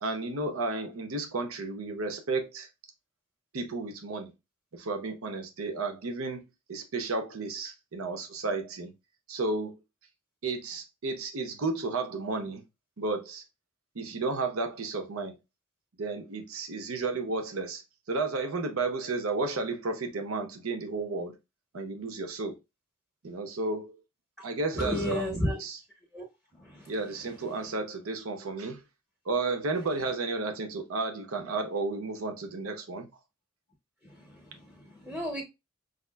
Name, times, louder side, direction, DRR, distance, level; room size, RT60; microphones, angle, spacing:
voice 1, 0.0-2.7 3.5-4.3 4.7-8.9 9.3-9.8 10.4-12.6 13.0-13.4 13.9-15.4 16.0-17.8 18.1-21.3 21.7-22.6 23.2-24.0 24.4-25.8 26.9-28.8 29.3-33.1, right 3 dB, 85° right, 0.7 m, -32 dB
voice 2, 24.7-25.6 26.1-26.3 26.5-26.9 34.0-35.4, equal, ahead, 0.6 m, -33 dB
4.9 x 2.4 x 2.2 m
head